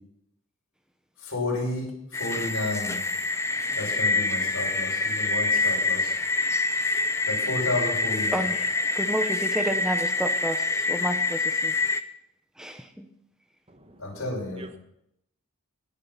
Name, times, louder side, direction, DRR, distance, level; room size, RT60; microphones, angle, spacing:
voice 1, 1.2-3.0 3.8-6.1 7.3-8.5 14.0-14.6, left 2 dB, 70° left, -3 dB, 6.2 m, -31 dB
sound 1, 2.1-12.0, left 3 dB, 10° left, 0.5 m, -26 dB
voice 2, 8.3-11.7 12.6-13.1, equal, 5° right, 6 dB, 1.0 m, -31 dB
voice 3, 13.7-14.2 14.5-14.8, equal, 25° right, 7 dB, 1.2 m, -47 dB
18.0 x 7.6 x 5.8 m, 0.78 s
head